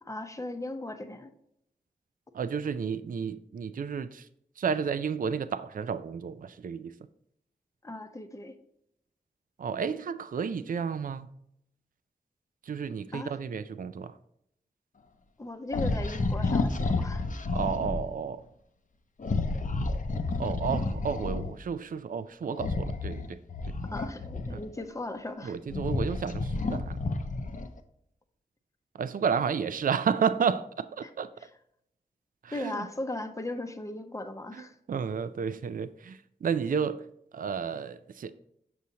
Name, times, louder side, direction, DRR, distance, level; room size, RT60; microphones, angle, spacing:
voice 1, 0.0-1.3 7.8-8.5 13.1-13.3 15.4-17.3 23.8-25.6 31.0-31.1 32.5-34.8, left 2 dB, 20° left, 7 dB, 0.7 m, -37 dB
voice 2, 2.3-4.3 4.6-6.9 9.6-11.3 12.6-14.1 17.5-18.4 20.4-23.4 24.5-24.6 25.4-27.0 28.9-31.3 32.4-32.9 34.5-34.6 34.9-37.1 37.3-38.3, right 6 dB, 60° right, 13 dB, 0.4 m, -31 dB
sound 1, 15.7-18.1 19.2-21.6 22.5-24.8 25.4-27.8, left 3 dB, 55° left, 0.6 m, -30 dB
6.8 x 6.2 x 2.8 m, 0.75 s
wide cardioid pair, 65°, 16 cm